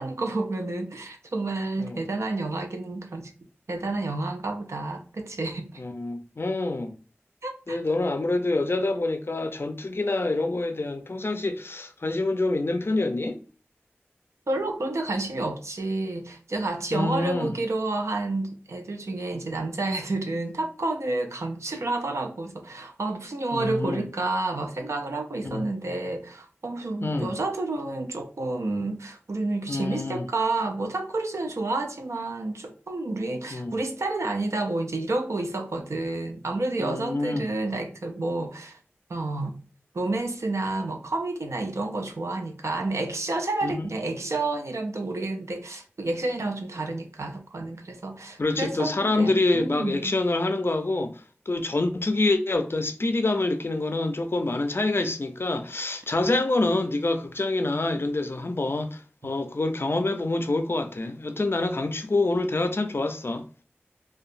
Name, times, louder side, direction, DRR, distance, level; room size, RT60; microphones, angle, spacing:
voice 1, 0.0-3.3 3.7-5.8 7.4-7.8 14.5-38.8 39.1-39.5 39.9-50.2, right 2 dB, 85° right, 0.4 m, -30 dB
voice 2, 5.8-6.9 7.7-13.4 16.9-17.5 23.5-24.0 25.4-25.7 27.0-27.4 29.7-30.3 33.5-33.8 36.8-37.5 43.6-43.9 48.4-63.4, left 2 dB, 55° left, 0.4 m, -26 dB
2.7 x 2.2 x 2.5 m
wide cardioid pair, 45°, 5 cm